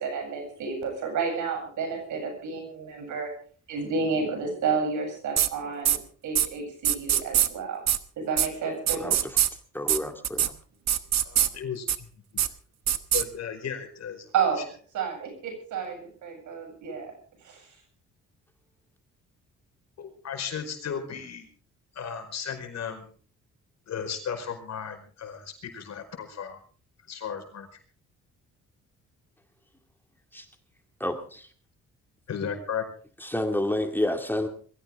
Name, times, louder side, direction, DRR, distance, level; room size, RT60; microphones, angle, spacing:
voice 1, 0.0-3.3 3.7-7.8 8.2-9.2 14.3-14.7 14.9-17.1 17.4-17.7, right 5 dB, 80° right, 4 dB, 7.8 m, -31 dB
sound 1, 5.4-5.5 5.8-6.0 6.3-6.5 6.8-7.5 7.9-8.0 8.4-8.5 8.9-9.5 9.9-10.0 10.2-10.5 10.9-11.5 11.9-12.0 12.4-12.5 12.9-13.2, right 10 dB, 60° right, 1.2 m, -22 dB
voice 2, 8.9-9.4 9.7-10.5 30.3-30.5 31.0-31.5 33.2-34.5, left 1 dB, 5° left, 5 dB, 2.2 m, -29 dB
voice 3, 11.2-12.1 13.1-14.3 20.0-21.5 21.9-23.1 23.9-26.6 27.1-27.7 32.3-32.8, left 7 dB, 60° left, 5 dB, 5.0 m, -35 dB
22.0 x 15.5 x 3.6 m, 0.43 s
cardioid pair, 90°, 30 cm